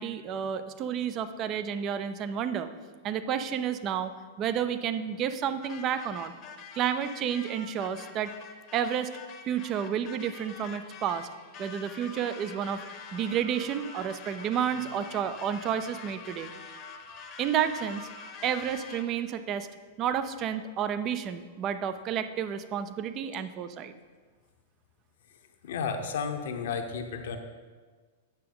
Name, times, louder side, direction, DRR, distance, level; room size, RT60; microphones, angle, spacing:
voice 1, 0.0-2.7 3.0-4.1 4.4-6.3 6.7-8.3 8.7-9.1 9.5-11.3 11.6-12.8 13.1-16.5 17.4-18.1 18.4-19.7 20.0-23.9, right 8 dB, 35° right, 11 dB, 0.5 m, -30 dB
sound 1, 5.6-19.3, left 5 dB, 40° left, 0.9 m, -46 dB
voice 2, 25.6-27.4, left 6 dB, 65° left, 5 dB, 0.9 m, -32 dB
9.0 x 6.7 x 3.8 m, 1.5 s
hypercardioid pair, 105°, 0 cm